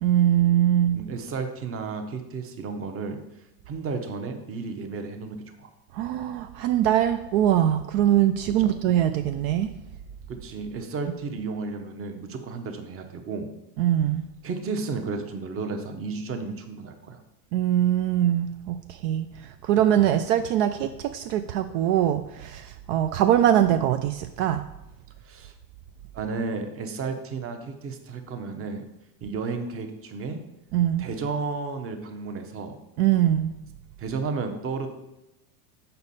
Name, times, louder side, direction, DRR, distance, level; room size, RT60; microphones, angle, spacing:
voice 1, 0.0-1.0 5.9-9.7 13.8-14.3 17.5-24.6 30.7-31.0 33.0-33.6, right 11 dB, 65° right, 8 dB, 0.5 m, -22 dB
voice 2, 0.9-3.2 3.7-5.7 8.5-8.7 10.3-13.5 14.4-17.2 25.2-25.5 26.1-28.8 29.2-30.4 31.0-32.8 34.0-34.9, right 4 dB, 30° right, 6 dB, 0.9 m, -33 dB
6.9 x 5.3 x 4.1 m, 0.91 s
supercardioid pair, 125°, 44 cm